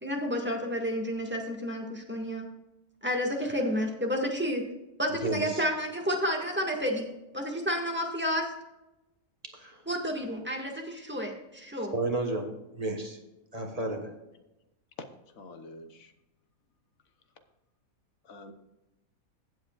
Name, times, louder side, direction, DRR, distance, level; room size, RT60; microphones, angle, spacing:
voice 1, 0.0-2.4 3.0-4.6 5.0-7.1 7.3-8.5 9.8-11.9, equal, 5° right, 0 dB, 1.7 m, -30 dB
voice 2, 5.2-5.6 9.5-9.8 11.9-12.5 12.7-13.2 13.5-14.1, right 2 dB, 25° right, 2 dB, 1.4 m, -32 dB
voice 3, 15.4-16.1 18.2-18.5, left 2 dB, 65° left, 7 dB, 1.4 m, -47 dB
15.5 x 8.0 x 2.4 m, 0.97 s
omnidirectional pair, 1.6 m